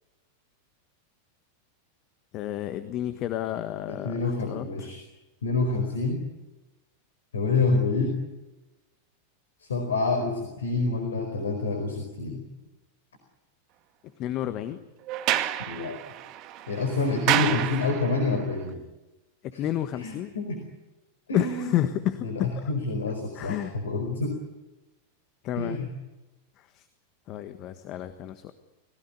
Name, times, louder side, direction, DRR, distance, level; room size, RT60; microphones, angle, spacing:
voice 1, 2.3-4.9 14.2-14.8 17.2-17.6 19.4-20.3 21.3-22.7 23.3-23.8 25.4-25.8 26.6-26.8 27.3-28.5, left 12 dB, 35° left, 11 dB, 1.4 m, -31 dB
voice 2, 3.9-5.0 5.4-6.2 7.3-8.2 9.7-12.4 15.7-16.0 16.7-18.8 20.0-20.6 21.3-21.7 22.2-23.6 23.8-24.3 25.6-25.9, left 3 dB, 70° left, 6 dB, 4.6 m, -27 dB
Sliding door, 15.1-18.3, right 13 dB, 40° right, 2.0 m, -29 dB
29.5 x 17.0 x 10.0 m, 1.1 s
figure-of-eight pair, 90°, 0 cm